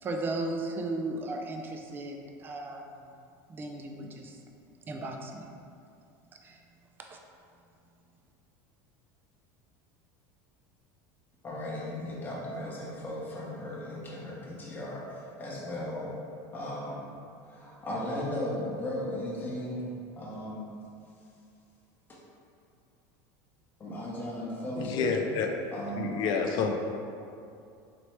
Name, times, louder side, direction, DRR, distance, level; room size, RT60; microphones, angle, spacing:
voice 1, 0.0-3.0 3.5-4.4 4.9-5.4 6.4-6.6 7.0-7.2, right 2 dB, 20° right, 2 dB, 0.4 m, -36 dB
voice 2, 11.4-16.1 16.5-17.0 17.5-19.8 20.2-20.6 22.1-22.2 23.8-25.1 25.7-26.1, left 1 dB, 20° left, -5 dB, 0.9 m, -36 dB
voice 3, 24.8-25.5 25.9-26.7, left 5 dB, 45° left, 3 dB, 0.4 m, -29 dB
4.2 x 3.0 x 3.2 m, 2.5 s
supercardioid pair, 135°, 10 cm